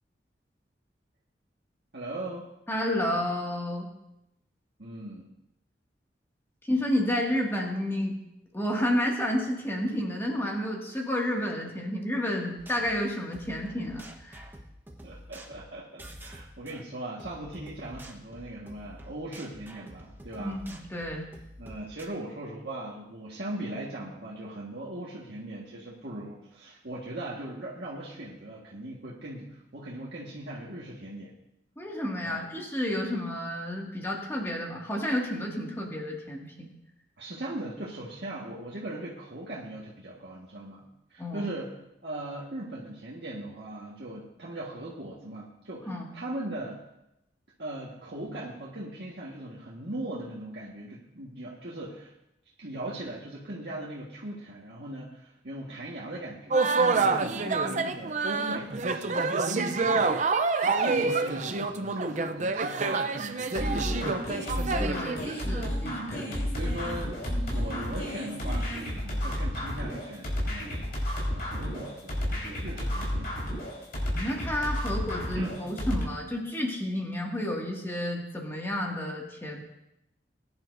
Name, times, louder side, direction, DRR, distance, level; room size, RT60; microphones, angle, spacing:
voice 1, 1.9-2.4 4.8-5.3 15.0-20.6 21.6-31.3 32.2-32.4 37.2-40.8 41.1-41.7 42.0-46.8 47.6-52.1 52.6-64.2 65.8-73.3 74.5-74.7 75.3-75.6, right 1 dB, 70° right, -6 dB, 1.7 m, -39 dB
voice 2, 2.7-3.9 6.7-8.2 8.5-14.4 20.4-21.3 31.8-36.7 41.2-41.5 45.9-46.1 57.3-57.9 64.8-66.3 74.1-79.6, left 1 dB, 15° left, -1 dB, 2.1 m, -31 dB
sound 1, 12.6-16.8 17.2-22.1, equal, 10° right, 1.1 m, -48 dB
sound 2, 56.5-65.7, right 4 dB, 45° right, 0.6 m, -27 dB
sound 3, 63.5-76.0, equal, 60° left, 4.5 m, -31 dB
20.5 x 10.5 x 2.7 m, 0.86 s
head